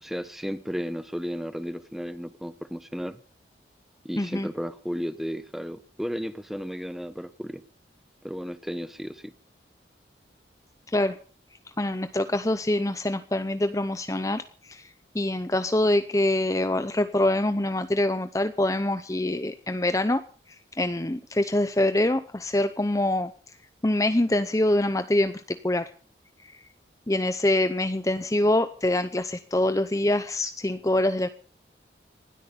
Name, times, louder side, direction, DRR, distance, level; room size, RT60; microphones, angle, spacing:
voice 1, 0.0-3.2 4.0-7.6 8.2-9.3, equal, ahead, 12 dB, 1.0 m, -34 dB
voice 2, 4.2-4.5 10.9-11.2 11.8-14.4 14.7-14.9 15.1-20.2 20.8-23.3 23.8-25.9 27.1-31.3, left 1 dB, 20° left, 11 dB, 0.7 m, -25 dB
19.5 x 13.0 x 5.4 m, 0.42 s
head